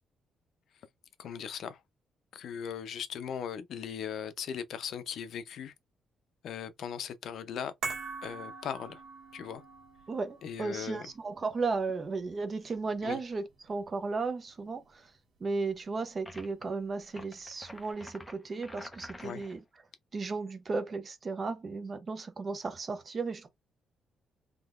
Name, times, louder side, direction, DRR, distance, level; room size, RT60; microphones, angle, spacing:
voice 1, 1.2-1.8 2.3-5.7 6.4-7.7 8.2-9.0 9.3-9.6 10.4-11.1 13.0-13.2 19.2-19.4, left 8 dB, 65° left, 0.6 m, -38 dB
sound 1, 7.8-14.2 14.5-14.6, right 4 dB, 75° right, 1.6 m, -44 dB
voice 2, 10.1-15.1 15.4-19.6 20.1-23.5, right 4 dB, 30° right, 0.6 m, -35 dB
sound 2, 16.3-16.6 17.1-19.6, left 1 dB, 10° left, 0.7 m, -48 dB
3.7 x 2.9 x 2.4 m
cardioid pair, 150°, 0 cm